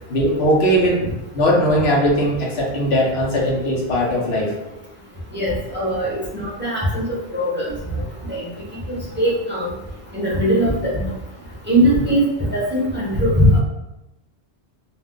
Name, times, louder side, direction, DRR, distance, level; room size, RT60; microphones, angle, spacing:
voice 1, 0.1-1.0 1.3-4.5, equal, 80° left, -2 dB, 1.0 m, -19 dB
voice 2, 5.3-7.7 8.3-8.4 8.9-9.7 10.1-11.1 11.7-13.6, equal, 10° right, -7 dB, 0.7 m, -20 dB
2.5 x 2.1 x 3.6 m, 0.97 s
omnidirectional pair, 1.1 m